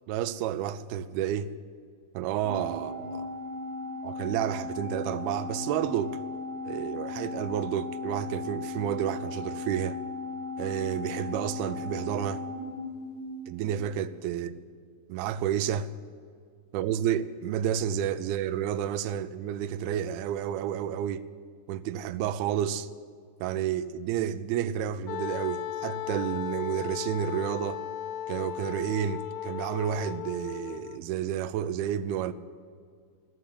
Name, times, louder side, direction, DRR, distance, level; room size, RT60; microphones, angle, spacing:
voice 1, 0.1-1.5 2.1-3.3 4.0-6.2 6.6-10.0 10.6-12.4 13.5-14.6 15.1-15.9 16.7-21.2 21.7-22.9 23.4-27.8 28.3-32.3, right 10 dB, 85° right, 2.3 m, -30 dB
Organ, 2.4-13.7, left 3 dB, 30° right, 4.4 m, -37 dB
Wind instrument woodwind instrument, 25.1-31.0, left 11 dB, 85° left, 2.5 m, -36 dB
14.5 x 6.7 x 10.0 m
omnidirectional pair, 4.9 m